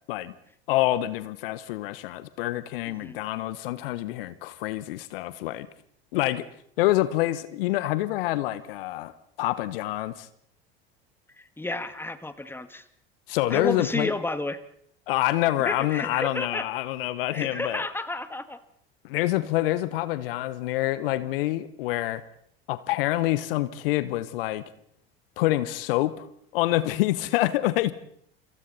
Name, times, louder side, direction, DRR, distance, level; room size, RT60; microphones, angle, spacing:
voice 1, 0.7-5.7 6.1-6.5 6.8-9.1 9.4-10.3 13.3-14.1 15.1-17.8 19.0-22.2 22.7-24.6 25.4-26.3 26.5-27.9, left 16 dB, 65° left, 15 dB, 1.2 m, -26 dB
voice 2, 11.4-12.8 13.5-14.6 15.6-16.7 17.3-18.6, left 2 dB, 5° left, 11 dB, 1.9 m, -31 dB
28.5 x 27.0 x 4.2 m, 0.67 s
figure-of-eight pair, 70°, 30 cm